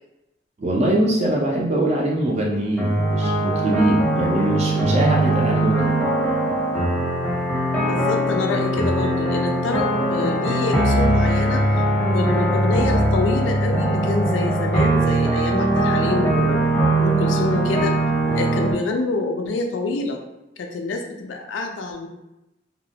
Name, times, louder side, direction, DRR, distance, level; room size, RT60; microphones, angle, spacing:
voice 1, 0.6-6.0, right 1 dB, 35° right, -3 dB, 0.4 m, -22 dB
sound 1, 2.8-18.7, right 1 dB, 5° left, 0.7 m, -21 dB
voice 2, 7.9-11.7 12.1-16.7 17.0-17.9 18.3-20.2 20.6-22.1, left 3 dB, 75° left, 3 dB, 0.4 m, -26 dB
2.8 x 2.1 x 2.7 m, 0.93 s
head